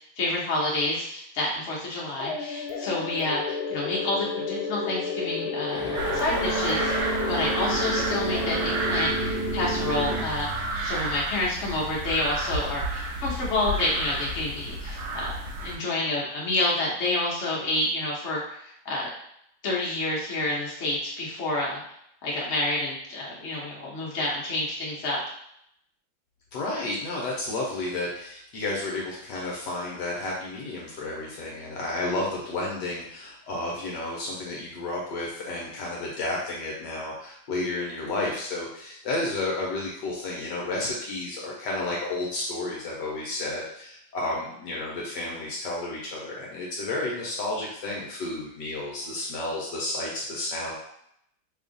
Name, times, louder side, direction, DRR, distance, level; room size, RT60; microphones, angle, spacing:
voice 1, 0.2-5.8 6.1-6.9 7.3-15.3 15.6-19.1 19.6-21.8 22.2-25.2, left 2 dB, 50° left, -4 dB, 0.9 m, -29 dB
sound 1, 2.2-10.2, left 1 dB, 85° left, 1.4 m, -31 dB
Chuckle chortle, 5.6-9.4, equal, 20° right, 0.4 m, -33 dB
sound 2, 5.9-15.8, right 2 dB, 65° right, 1.2 m, -32 dB
voice 2, 26.5-50.8, left 2 dB, 70° left, -3 dB, 1.2 m, -31 dB
3.5 x 2.3 x 3.8 m, 0.73 s
omnidirectional pair, 2.2 m